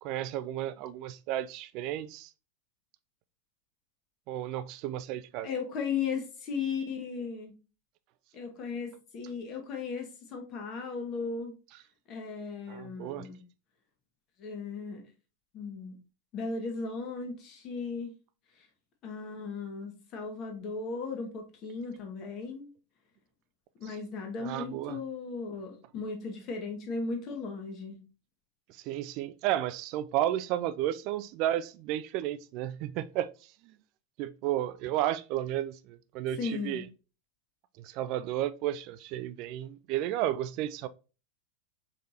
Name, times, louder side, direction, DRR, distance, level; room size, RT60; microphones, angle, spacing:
voice 1, 0.0-2.3 4.3-5.5 12.7-13.3 24.4-25.0 28.9-33.3 34.2-36.8 37.8-40.9, right 12 dB, 40° right, 0.3 m, -32 dB
voice 2, 5.4-7.5 8.3-11.5 12.1-13.4 14.4-15.1 15.5-16.0 16.3-18.1 18.5-18.7 19.0-22.7 23.8-28.0 36.4-36.8, left 4 dB, 35° left, 1.2 m, -36 dB
4.8 x 3.4 x 2.6 m
figure-of-eight pair, 90°, 0 cm